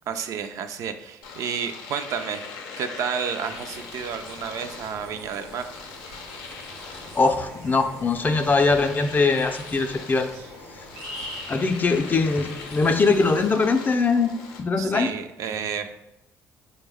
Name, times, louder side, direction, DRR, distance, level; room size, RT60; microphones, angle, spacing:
voice 1, 0.1-2.5 2.8-5.7 14.8-16.0, right 7 dB, 65° right, 8 dB, 0.3 m, -31 dB
Domestic sounds home sounds, 1.2-14.6, left 5 dB, 90° left, 0.5 m, -41 dB
sound 1, 3.4-13.5, right 1 dB, 85° right, 0.7 m, -44 dB
voice 2, 6.9-10.3 11.5-14.3 14.6-15.1, left 4 dB, 30° left, 6 dB, 0.4 m, -22 dB
4.5 x 2.1 x 3.4 m, 0.89 s
supercardioid pair, 70°, 6 cm